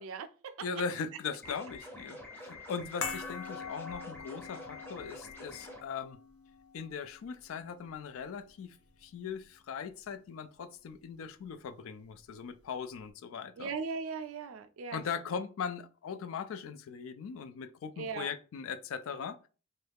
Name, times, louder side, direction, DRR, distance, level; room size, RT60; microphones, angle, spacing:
voice 1, 0.0-0.5 13.6-15.0 18.0-18.3, right 5 dB, 65° right, 0.4 m, -38 dB
voice 2, 0.6-6.2 6.7-8.8 9.0-13.7 14.9-19.5, left 6 dB, 65° left, 0.3 m, -39 dB
sound 1, 1.4-5.8, left 1 dB, 10° left, 0.6 m, -47 dB
sound 2, 3.0-9.4 9.7-9.8, left 5 dB, 85° left, 0.8 m, -44 dB
3.1 x 2.3 x 3.3 m
head